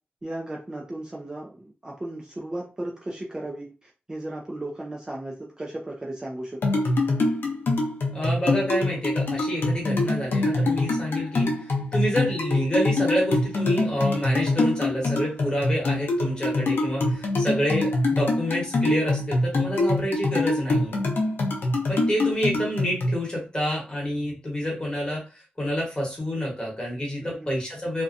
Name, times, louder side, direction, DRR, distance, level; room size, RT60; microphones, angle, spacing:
voice 1, 0.2-6.8 27.2-27.6, right 1 dB, 20° right, -2 dB, 0.4 m, -35 dB
sound 1, 6.6-23.1, left 2 dB, 75° left, 0.6 m, -24 dB
voice 2, 8.1-11.5 11.9-21.0 21.9-28.0, equal, 25° left, -3 dB, 1.1 m, -28 dB
2.6 x 2.2 x 2.5 m, 0.32 s
wide cardioid pair, 180°, 4 cm